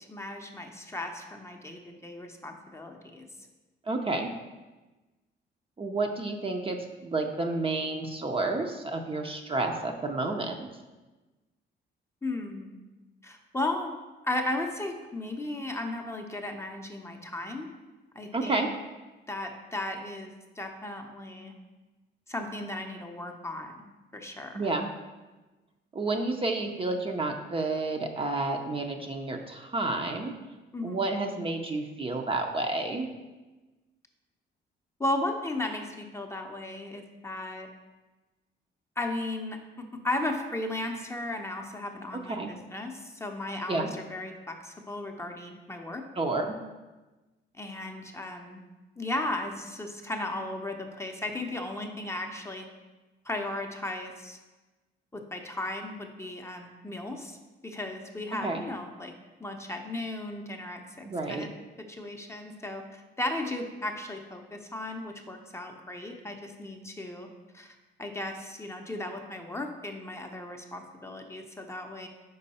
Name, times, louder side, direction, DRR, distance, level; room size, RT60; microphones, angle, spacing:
voice 1, 0.1-3.2 12.2-12.8 13.2-13.9 14.2-17.7 18.1-18.6 19.3-20.3 20.6-21.5 22.3-23.8 24.1-24.6 30.7-31.0 35.0-37.7 39.0-39.6 40.0-46.0 47.6-48.6 49.0-52.7 53.2-54.4 55.1-57.4 57.6-59.1 59.4-61.5 61.9-67.3 67.5-72.1, left 2 dB, 15° left, 3 dB, 0.6 m, -35 dB
voice 2, 3.9-4.3 5.8-10.7 18.3-18.7 24.5-24.9 25.9-30.3 30.8-33.1 42.3-42.5 43.7-43.9 46.2-46.6 58.4-58.6 61.0-61.4, right 2 dB, 25° right, 3 dB, 0.6 m, -30 dB
5.4 x 4.6 x 4.2 m, 1.2 s
cardioid pair, 90°, 20 cm